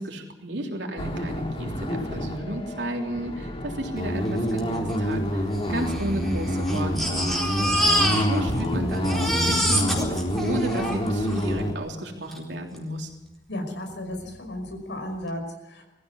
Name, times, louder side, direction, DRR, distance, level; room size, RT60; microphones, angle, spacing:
voice 1, 0.0-7.3 8.0-13.1, right 1 dB, 75° right, 1 dB, 3.3 m, -33 dB
sound 1, 1.0-11.7, equal, 30° left, 2.8 m, -27 dB
Crying sobbing, 4.6-4.7 4.9-5.0 5.8-8.7 8.9-11.5 12.3-12.4 12.8-12.9, equal, ahead, 4.3 m, -26 dB
voice 2, 13.5-15.8, left 1 dB, 90° left, 3 dB, 5.4 m, -34 dB
23.0 x 15.0 x 8.3 m, 0.98 s
head